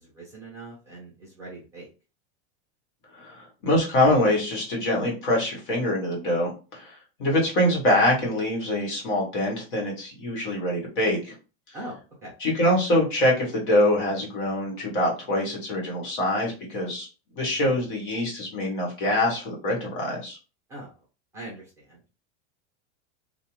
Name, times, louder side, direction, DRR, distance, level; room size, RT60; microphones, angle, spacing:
voice 1, 0.0-1.9 11.7-12.3 20.7-20.9 21.3-22.0, right 1 dB, 10° right, -5 dB, 0.8 m, -41 dB
voice 2, 3.2-11.3 12.4-17.1 17.3-20.4, left 1 dB, 50° left, -1 dB, 1.3 m, -24 dB
2.4 x 2.4 x 3.0 m, 0.33 s
supercardioid pair, 180°, 33 cm